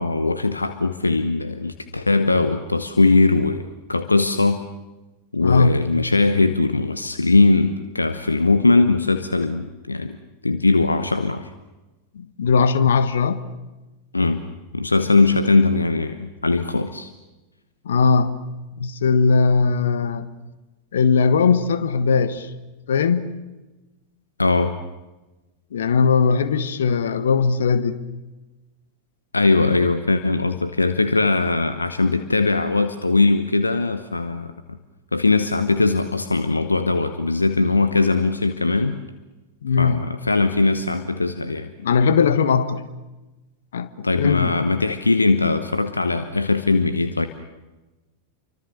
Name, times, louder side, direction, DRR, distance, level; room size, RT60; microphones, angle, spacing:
voice 1, 0.0-4.6 5.3-10.2 10.4-11.5 14.1-14.5 14.7-17.1 24.4-24.8 29.3-34.5 35.1-39.0 39.8-41.7 44.0-47.3, left 3 dB, 80° left, 1.0 m, -20 dB
voice 2, 5.4-5.9 12.1-13.4 17.8-18.4 18.8-20.3 20.9-22.5 22.9-23.4 25.7-28.0 39.6-40.1 41.8-42.8 43.7-44.6, left 5 dB, 65° left, 1.4 m, -19 dB
29.0 x 24.5 x 6.9 m
figure-of-eight pair, 90°, 0 cm